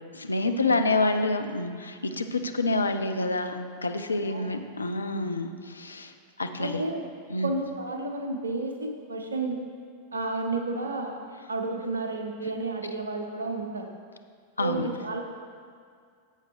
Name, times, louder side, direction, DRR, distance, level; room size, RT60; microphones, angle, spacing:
voice 1, 0.0-6.1 6.4-6.8 7.3-7.5 14.6-14.9, left 2 dB, 75° left, 7 dB, 0.5 m, -28 dB
voice 2, 6.6-7.0 7.4-9.6 10.1-13.9 14.6-15.2, right 3 dB, 75° right, 4 dB, 0.9 m, -31 dB
11.0 x 8.0 x 3.1 m, 2.1 s
figure-of-eight pair, 90°, 0 cm